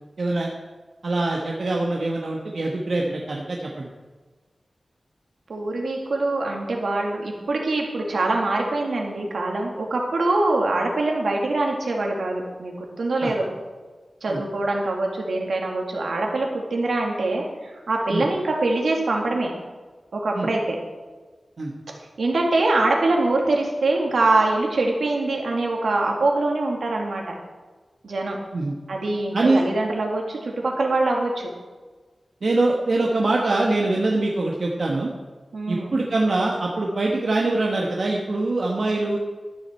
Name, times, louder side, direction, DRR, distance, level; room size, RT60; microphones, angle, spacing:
voice 1, 0.2-0.5 1.0-3.9 13.2-13.3 14.3-14.4 18.1-18.2 20.3-20.5 21.6-21.7 28.5-28.7 29.3-29.6 32.4-35.1 35.7-39.2, right 2 dB, 70° right, -1 dB, 1.3 m, -23 dB
voice 2, 5.5-13.4 14.2-19.5 20.1-20.8 22.2-27.3 28.0-28.4 28.9-31.5 35.5-36.0, right 2 dB, 85° right, 0 dB, 2.3 m, -24 dB
12.5 x 9.9 x 4.5 m, 1.3 s
wide cardioid pair, 95°, 0 cm